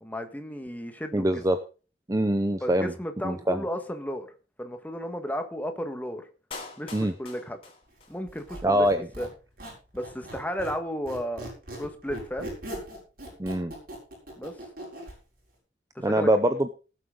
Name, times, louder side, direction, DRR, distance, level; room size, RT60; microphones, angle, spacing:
voice 1, 0.0-1.4 2.6-4.3 4.6-6.3 6.8-7.6 8.1-9.3 9.9-11.5 11.8-12.5 14.4-14.5 16.0-16.3, equal, 10° left, 6 dB, 1.6 m, -34 dB
voice 2, 1.1-1.6 2.1-2.9 3.2-3.6 6.9-7.1 8.6-9.0 13.4-13.7 16.0-16.7, right 1 dB, 20° right, 9 dB, 0.6 m, -23 dB
Clapping, 6.5-8.5 8.8-8.9, left 3 dB, 30° left, 3.4 m, -43 dB
Squeak, 8.3-10.8 11.1-15.2, right 1 dB, 50° right, 6.7 m, -40 dB
19.5 x 7.9 x 3.8 m, 0.35 s
head